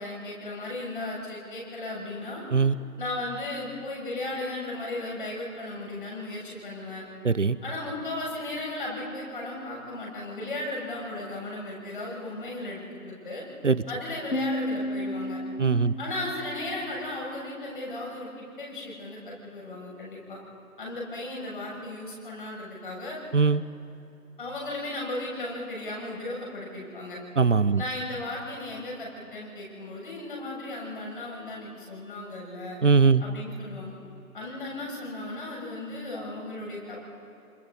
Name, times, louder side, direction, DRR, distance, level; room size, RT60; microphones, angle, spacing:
voice 1, 0.0-2.4 3.0-7.0 7.6-13.4 13.9-15.4 16.0-20.4 20.8-23.2 24.4-27.2 27.8-32.8 33.2-33.9 34.3-37.1, left 2 dB, 35° left, -3 dB, 7.3 m, -36 dB
voice 2, 7.2-7.6 13.6-13.8 15.6-15.9 23.3-23.6 27.4-27.8 32.8-33.2, right 5 dB, 55° right, 16 dB, 0.7 m, -20 dB
Piano, 14.3-17.7, left 1 dB, 70° left, 1.7 m, -34 dB
27.5 x 27.0 x 4.2 m, 2.8 s
figure-of-eight pair, 170°, 46 cm